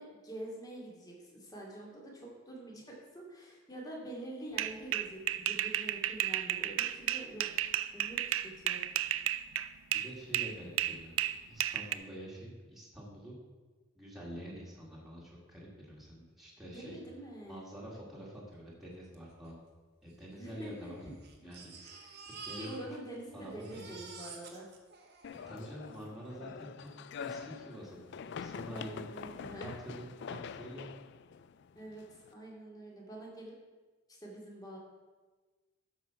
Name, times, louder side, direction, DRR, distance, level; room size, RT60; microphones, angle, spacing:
voice 1, 0.0-7.5 7.9-8.2 8.6-8.8 16.6-17.6 20.4-20.9 21.6-22.2 22.6-24.7 28.7-29.7 31.8-33.5 34.1-34.8, right 1 dB, 20° left, -2 dB, 2.5 m, -46 dB
sound 1, 4.6-10.1 10.3-11.9, right 12 dB, 70° right, 0.4 m, -32 dB
voice 2, 9.9-11.1 11.5-13.4 14.0-17.0 17.5-19.6 20.0-21.0 21.4-21.7 22.2-22.7 23.3-24.0 25.5-30.9, equal, ahead, -6 dB, 2.3 m, -47 dB
Crying sobbing, 19.1-19.2 19.4-19.5 20.3-23.2 23.5-26.0 26.9-27.0 27.3-27.4, right 4 dB, 50° right, 1.5 m, -50 dB
sound 2, 25.2-32.3, left 6 dB, 55° left, 0.3 m, -45 dB
12.5 x 5.6 x 5.9 m, 1.3 s
head